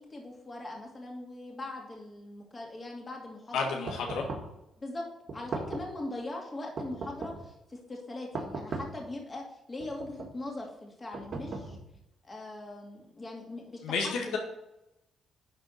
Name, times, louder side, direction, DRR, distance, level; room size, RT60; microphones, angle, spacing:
voice 1, 0.0-3.7 4.8-5.1 5.3-11.8 12.2-13.8 14.3-14.4, left 2 dB, 30° left, 0 dB, 2.5 m, -41 dB
voice 2, 3.5-4.3 13.8-14.4, left 4 dB, 90° left, 0 dB, 1.8 m, -31 dB
sound 1, 3.9-4.6 5.3-6.0 6.8-7.5 8.3-9.1 9.8-10.4 11.1-12.0, right 3 dB, 50° right, 1.8 m, -38 dB
11.0 x 4.0 x 6.5 m, 0.88 s
cardioid pair, 85°, 0 cm